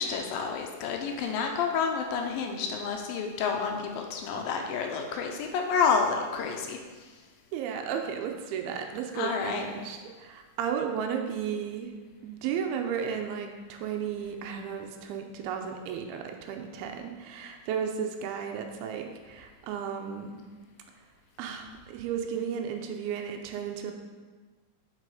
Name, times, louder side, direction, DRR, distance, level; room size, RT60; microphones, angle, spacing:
voice 1, 0.0-6.8 9.2-9.7, left 5 dB, 80° left, 2 dB, 2.4 m, -29 dB
voice 2, 7.5-11.9 12.2-20.4 21.4-23.9, right 7 dB, 90° right, 4 dB, 2.6 m, -34 dB
7.6 x 6.1 x 4.9 m, 1.4 s
omnidirectional pair, 4.3 m